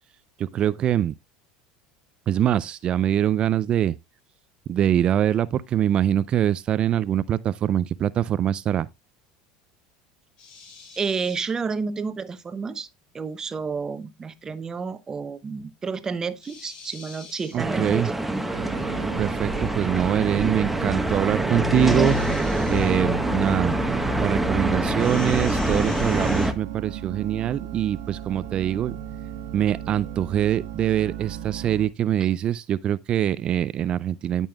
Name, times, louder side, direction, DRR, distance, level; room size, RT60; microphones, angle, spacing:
voice 1, 0.4-1.1 2.3-4.0 4.7-8.9 17.5-18.1 19.2-22.4 22.7-23.8 24.2-29.0 29.5-34.5, right 10 dB, 45° right, 0.4 m, -23 dB
sound 1, 10.4-11.5 16.4-17.6 21.7-23.0 25.0-26.5, left 4 dB, 45° left, 4.4 m, -43 dB
voice 2, 11.0-12.9 13.1-17.8, right 5 dB, 25° right, 0.9 m, -30 dB
sound 2, 17.6-26.5, right 1 dB, 5° right, 1.1 m, -25 dB
sound 3, 18.5-31.9, right 10 dB, 80° right, 1.2 m, -36 dB
13.5 x 5.4 x 2.3 m
hypercardioid pair, 90°, 2 cm